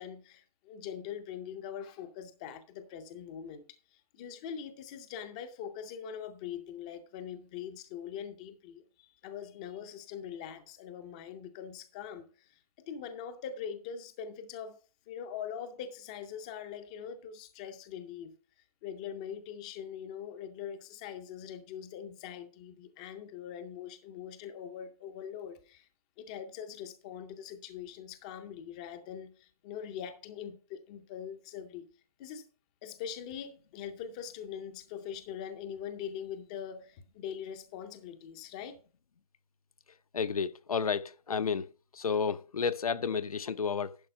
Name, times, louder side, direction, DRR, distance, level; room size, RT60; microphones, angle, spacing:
voice 1, 0.0-3.6 3.9-12.6 12.9-14.8 15.1-18.4 18.8-25.9 26.2-31.9 32.2-32.4 32.8-38.8, left 8 dB, 10° left, 0.5 m, -42 dB
voice 2, 40.1-41.7 41.9-44.0, left 6 dB, 75° left, 0.7 m, -31 dB
11.0 x 4.7 x 5.3 m
hypercardioid pair, 160°, 19 cm